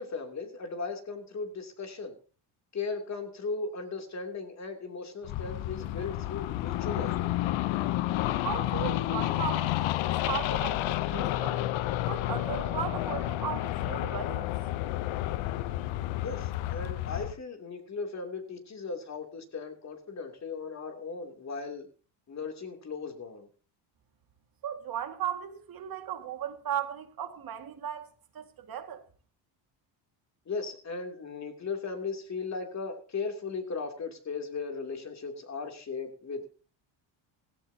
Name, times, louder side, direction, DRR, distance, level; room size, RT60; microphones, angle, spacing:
voice 1, 0.0-2.1 2.7-7.3 16.2-21.9 22.3-23.5 30.5-36.5, left 4 dB, 35° left, 3.0 m, -37 dB
sound 1, 5.2-17.3, left 15 dB, 75° left, 0.9 m, -30 dB
voice 2, 8.4-11.7 12.1-14.5 24.6-29.0, right 9 dB, 50° right, 2.1 m, -36 dB
17.0 x 16.0 x 2.9 m
cardioid pair, 120°, 47 cm